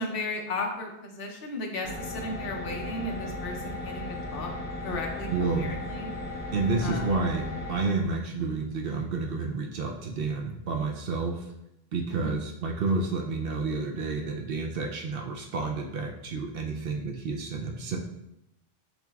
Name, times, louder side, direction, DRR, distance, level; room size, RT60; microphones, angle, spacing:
voice 1, 0.0-4.5 4.8-6.1 6.8-7.1 12.1-12.4, left 2 dB, 65° left, 1 dB, 1.0 m, -35 dB
sound 1, 1.8-7.8, left 1 dB, 5° right, 0.7 m, -36 dB
voice 2, 5.3-5.7 6.5-11.4 11.9-18.0, right 3 dB, 65° right, 2 dB, 0.8 m, -30 dB
7.8 x 2.9 x 2.3 m, 0.85 s
omnidirectional pair, 1.0 m